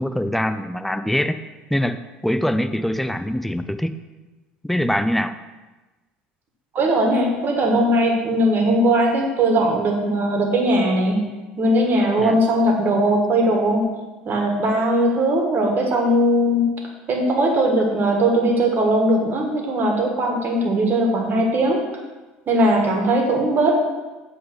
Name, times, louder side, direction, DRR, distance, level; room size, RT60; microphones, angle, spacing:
voice 1, 0.0-1.4 1.7-3.9 4.6-5.3 12.2-12.4, equal, 5° left, 11 dB, 0.4 m, -23 dB
voice 2, 6.7-11.2 11.6-13.9 14.2-16.7 17.1-21.8 22.5-23.8, right 1 dB, 40° right, 1 dB, 1.7 m, -19 dB
7.8 x 3.5 x 5.4 m, 1.2 s
hypercardioid pair, 75°, 5 cm